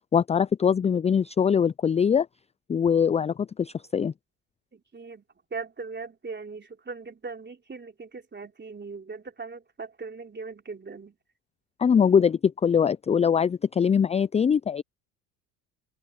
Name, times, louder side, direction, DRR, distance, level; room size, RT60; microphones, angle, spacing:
voice 1, 0.1-2.3 2.7-4.1 11.8-14.8, left 7 dB, 15° left, 0.4 m, -22 dB
voice 2, 4.7-5.2 5.5-11.1, right 4 dB, 20° right, 3.4 m, -39 dB
hypercardioid pair, 70°, 49 cm